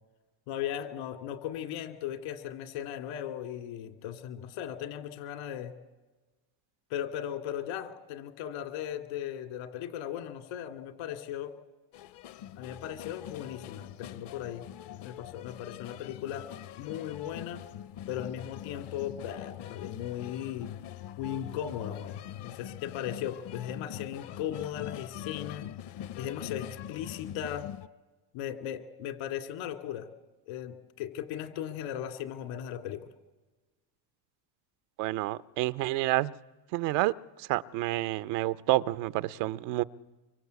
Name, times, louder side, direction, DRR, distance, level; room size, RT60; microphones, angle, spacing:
voice 1, 0.5-5.7 6.9-11.6 12.6-14.7 15.0-16.5 16.8-17.6 18.1-20.7 21.2-25.7 26.2-27.7 28.3-30.1 30.5-33.0, left 10 dB, 80° left, 2.8 m, -37 dB
sound 1, 11.9-27.9, left 11 dB, 55° left, 0.8 m, -43 dB
voice 2, 35.0-36.3 36.7-37.1 37.4-39.8, right 17 dB, 85° right, 0.9 m, -29 dB
25.0 x 24.5 x 8.3 m
supercardioid pair, 105°, 50 cm